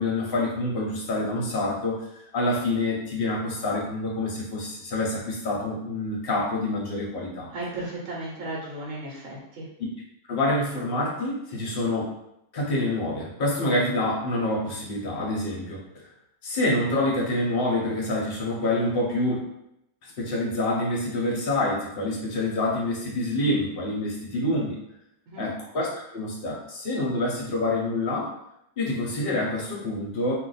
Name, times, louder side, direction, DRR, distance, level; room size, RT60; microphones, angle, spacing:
voice 1, 0.0-7.5 10.3-12.0 12.5-16.1 16.4-19.4 20.0-24.8 25.4-28.3 28.8-30.3, left 1 dB, 50° left, -3 dB, 0.7 m, -27 dB
voice 2, 7.5-9.7 25.3-25.5, right 2 dB, 60° right, -4 dB, 0.9 m, -35 dB
2.5 x 2.3 x 4.0 m, 0.81 s
omnidirectional pair, 1.8 m